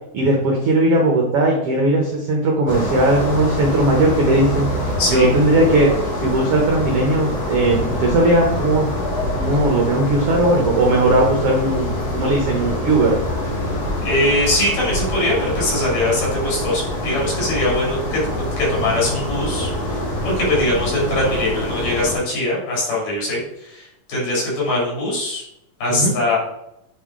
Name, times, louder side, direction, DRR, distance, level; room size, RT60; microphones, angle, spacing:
voice 1, 0.1-4.7 5.1-8.9 9.3-13.2 25.9-26.2, right 2 dB, 80° right, 0 dB, 1.3 m, -18 dB
sound 1, 2.7-22.2, left 1 dB, 60° left, 3.8 m, -25 dB
voice 2, 5.0-5.3 14.0-18.2 18.6-20.0 20.2-23.4 23.7-25.4 25.8-26.4, left 1 dB, 75° left, -5 dB, 4.1 m, -21 dB
8.4 x 3.2 x 3.6 m, 0.81 s
omnidirectional pair, 3.8 m